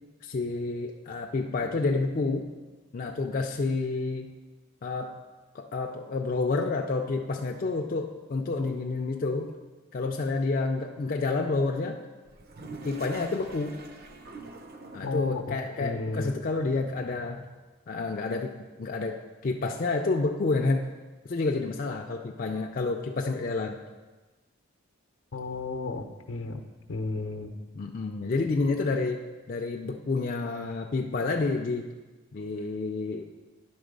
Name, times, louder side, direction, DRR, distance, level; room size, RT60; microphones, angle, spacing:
voice 1, 0.2-2.5 2.9-4.3 4.8-5.1 5.5-9.5 9.9-12.0 12.8-13.8 14.9-17.4 17.9-18.5 18.8-20.9 21.2-23.8 27.7-29.2 29.5-31.9 32.3-33.2, left 3 dB, 40° left, 2 dB, 0.4 m, -29 dB
Toilet flush, 12.3-15.3, right 3 dB, 50° right, 0.6 m, -44 dB
voice 2, 15.0-16.4 25.3-26.6 26.9-27.5, left 3 dB, 75° left, 6 dB, 0.7 m, -33 dB
10.5 x 3.9 x 5.2 m, 1.2 s
head